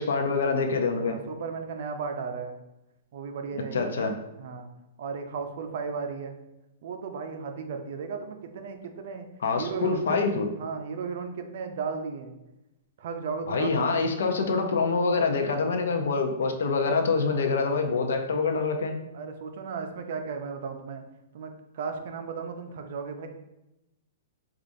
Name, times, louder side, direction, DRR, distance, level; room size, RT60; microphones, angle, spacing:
voice 1, 0.0-1.2 3.7-4.1 9.4-10.5 13.5-18.9, left 4 dB, 85° left, 4 dB, 0.5 m, -25 dB
voice 2, 1.0-2.6 3.1-4.0 4.4-4.7 5.0-6.4 6.8-9.3 9.6-10.2 10.6-12.3 13.0-14.0 19.1-21.0 21.3-23.3, right 5 dB, 50° right, 6 dB, 0.4 m, -35 dB
4.7 x 2.4 x 2.6 m, 0.93 s
hypercardioid pair, 165°, 0 cm